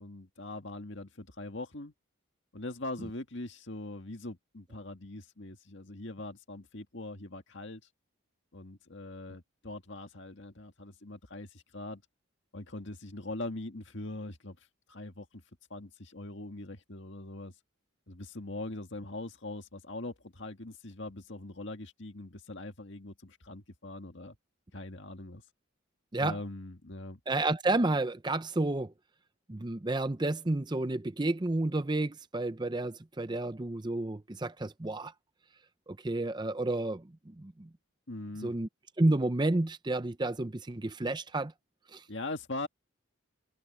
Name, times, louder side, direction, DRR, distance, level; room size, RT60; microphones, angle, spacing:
voice 1, 0.0-1.9 2.5-7.8 8.5-12.0 12.5-14.6 14.9-15.4 15.7-17.5 18.1-24.4 24.7-25.4 26.2-27.2 38.1-38.5 42.1-42.7, left 2 dB, 55° left, 2.0 m, -42 dB
voice 2, 27.3-28.9 29.5-35.1 35.9-37.7 38.4-38.7 39.0-41.5 41.9-42.0, right 2 dB, 20° right, 0.6 m, -31 dB
head